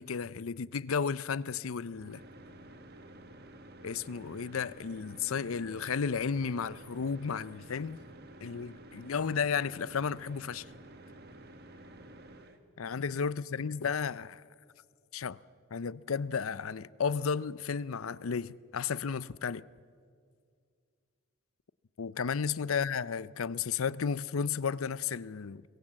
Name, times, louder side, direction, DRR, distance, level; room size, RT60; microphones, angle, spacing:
voice 1, 0.0-2.2 3.8-8.0 8.4-10.6 12.8-14.4 15.1-15.4 15.7-19.6 22.0-25.6, left 6 dB, 85° left, 0.6 m, -33 dB
sound 1, 1.9-12.6, right 1 dB, 50° right, 1.6 m, -51 dB
25.0 x 22.0 x 7.6 m
head